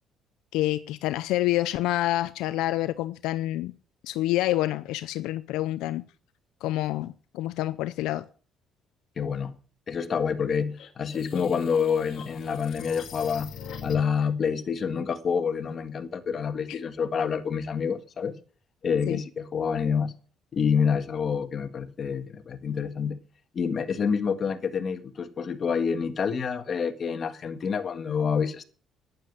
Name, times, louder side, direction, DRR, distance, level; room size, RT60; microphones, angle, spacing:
voice 1, 0.5-3.7 4.0-6.0 6.6-8.2 16.7-16.8 19.1-19.2, left 15 dB, 85° left, 0.5 m, -27 dB
voice 2, 9.2-9.5 9.9-13.5 13.8-18.3 18.8-20.1 20.5-23.2 23.5-28.6, left 6 dB, 40° left, 1.7 m, -27 dB
sound 1, 10.8-14.3, left 6 dB, 65° left, 2.0 m, -42 dB
11.5 x 9.8 x 6.7 m
cardioid pair, 105°, 0 cm